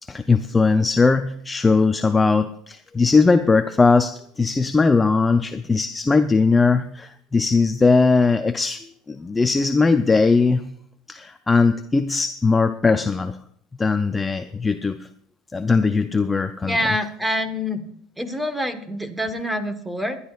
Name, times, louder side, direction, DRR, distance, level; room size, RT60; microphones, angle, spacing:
voice 1, 0.0-10.7 11.1-13.4 13.8-15.1 15.5-16.8, left 4 dB, 15° left, 0.5 m, -19 dB
voice 2, 16.7-17.8 18.2-20.2, left 1 dB, 5° right, 1.3 m, -26 dB
22.0 x 11.0 x 2.5 m
supercardioid pair, 135°, 0 cm